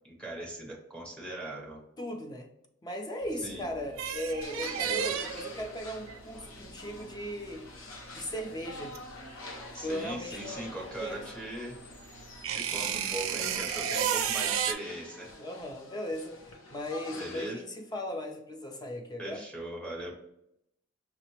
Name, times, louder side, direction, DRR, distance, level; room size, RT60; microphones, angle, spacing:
voice 1, 0.0-1.8 3.4-3.7 4.8-5.1 9.7-11.8 12.5-15.4 17.1-17.6 19.2-20.1, right 1 dB, 5° left, 0.9 m, -40 dB
voice 2, 2.0-2.5 2.8-7.7 8.1-9.0 9.8-11.2 15.4-19.5, equal, 20° left, 0.5 m, -37 dB
sound 1, 3.2-9.8 10.1-14.7, right 8 dB, 70° right, 0.4 m, -33 dB
sound 2, 4.4-17.5, left 2 dB, 80° left, 0.7 m, -47 dB
5.8 x 2.1 x 2.9 m
head